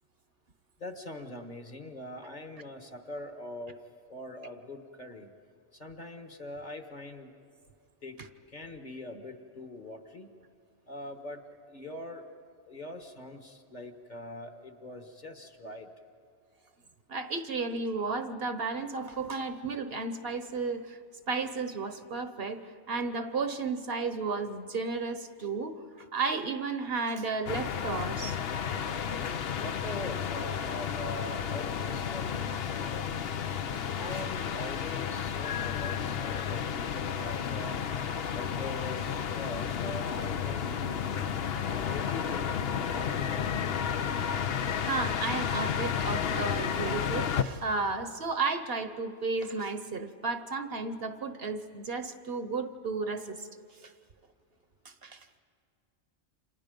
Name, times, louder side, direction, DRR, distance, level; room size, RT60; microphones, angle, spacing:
voice 1, 0.8-3.8 4.1-5.3 5.7-7.3 8.0-8.2 8.5-10.3 10.9-11.4 11.7-12.2 12.7-15.9 29.6-33.2 34.0-37.8 38.3-41.3 41.9-43.5, left 1 dB, 40° left, 5 dB, 1.6 m, -43 dB
voice 2, 17.1-21.0 21.3-22.6 22.9-25.7 26.1-28.4 33.7-33.9 44.8-53.5 53.8-53.9 54.8-55.4, right 4 dB, 60° right, 9 dB, 1.2 m, -33 dB
sound 1, 27.5-47.4, left 7 dB, 60° left, 0.9 m, -32 dB
30.0 x 26.5 x 5.3 m, 2.3 s
omnidirectional pair, 1.2 m